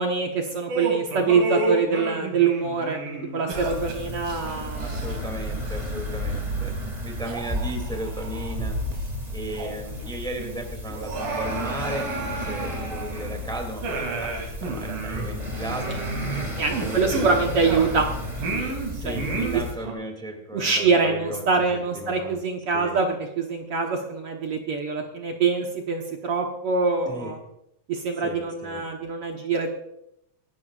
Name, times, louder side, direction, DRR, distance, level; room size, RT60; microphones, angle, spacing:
voice 1, 0.0-5.2 15.8-16.0 16.6-18.1 19.0-19.6 20.5-27.4 27.9-29.7, right 4 dB, 60° right, 2 dB, 1.6 m, -25 dB
sound 1, 0.7-5.4 5.7-5.9 6.5-6.6 7.2-8.5 8.9-9.0 9.5-10.0 10.3-10.4 10.9-13.3 13.8-18.1 18.4-19.9, right 3 dB, 80° right, 4.2 m, -31 dB
sound 2, 3.5-19.8, equal, 20° right, 1.3 m, -32 dB
voice 2, 4.8-16.0 16.8-17.5 18.9-22.4 22.7-23.0 27.1-27.4 28.2-28.9, right 1 dB, ahead, 3 dB, 1.8 m, -36 dB
25.5 x 11.5 x 2.4 m, 0.78 s
omnidirectional pair, 3.9 m